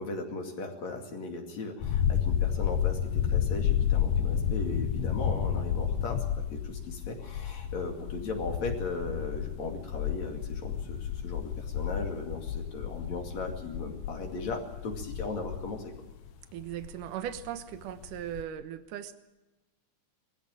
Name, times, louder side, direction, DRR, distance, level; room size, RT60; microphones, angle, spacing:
voice 1, 0.0-15.9, left 3 dB, 60° left, 2 dB, 3.6 m, -37 dB
sound 1, 1.8-17.5 17.9-18.4, left 9 dB, 80° left, 2.7 m, -31 dB
voice 2, 16.5-19.2, right 11 dB, 80° right, 10 dB, 2.7 m, -38 dB
21.0 x 15.0 x 8.9 m, 1.1 s
omnidirectional pair, 3.6 m